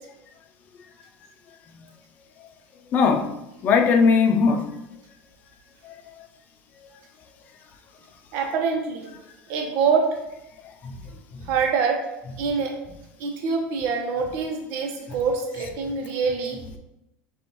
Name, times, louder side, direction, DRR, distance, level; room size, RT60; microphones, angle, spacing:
voice 1, 2.9-3.3 3.6-4.7 5.8-6.3 10.8-11.0 11.3-11.4, left 5 dB, 45° left, 4 dB, 0.6 m, -20 dB
voice 2, 8.3-9.1 9.5-10.1 11.4-12.0 12.4-12.7 13.2-16.6, right 5 dB, 65° right, 1 dB, 1.1 m, -25 dB
6.3 x 2.7 x 3.1 m, 0.91 s
supercardioid pair, 130°, 4 cm